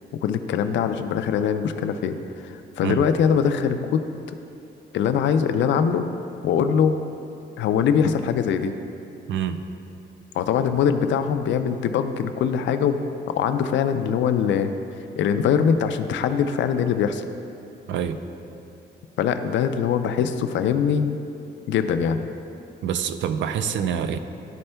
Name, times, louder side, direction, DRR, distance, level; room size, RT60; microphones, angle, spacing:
voice 1, 0.1-4.0 4.9-6.1 6.4-7.0 7.6-8.7 10.3-13.0 13.3-14.7 15.2-17.3 19.2-21.1 21.7-22.2, left 7 dB, 85° left, 9 dB, 0.4 m, -22 dB
voice 2, 9.3-9.7 17.9-18.2 22.8-24.2, right 8 dB, 80° right, 10 dB, 0.4 m, -26 dB
11.5 x 4.3 x 2.2 m, 2.8 s
wide cardioid pair, 170°, 19 cm